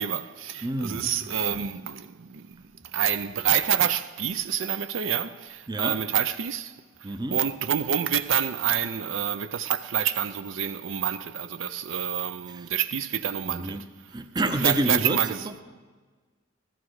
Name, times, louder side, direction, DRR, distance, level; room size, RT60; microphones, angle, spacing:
voice 1, 0.0-2.6 2.9-6.7 7.0-13.8 14.4-15.5, right 9 dB, 65° right, 0.5 m, -27 dB
voice 2, 0.6-1.7 5.7-6.0 7.0-7.5 12.5-12.7 13.4-15.6, right 1 dB, 20° right, 0.6 m, -30 dB
15.0 x 13.5 x 4.8 m
head